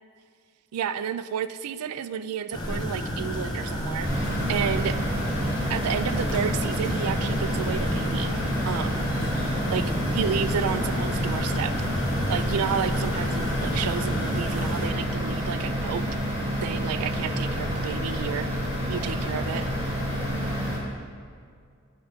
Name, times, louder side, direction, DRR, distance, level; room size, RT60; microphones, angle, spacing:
voice 1, 0.7-5.0 5.7-8.3 8.7-9.0 9.7-11.7 12.3-16.1 16.6-18.5 18.9-19.7, right 8 dB, 85° right, 13 dB, 0.3 m, -31 dB
sound 1, 2.5-14.9, equal, 20° left, 0.8 m, -31 dB
sound 2, 4.0-20.8, equal, 25° right, 2.0 m, -29 dB
9.1 x 4.3 x 5.1 m, 2.1 s
head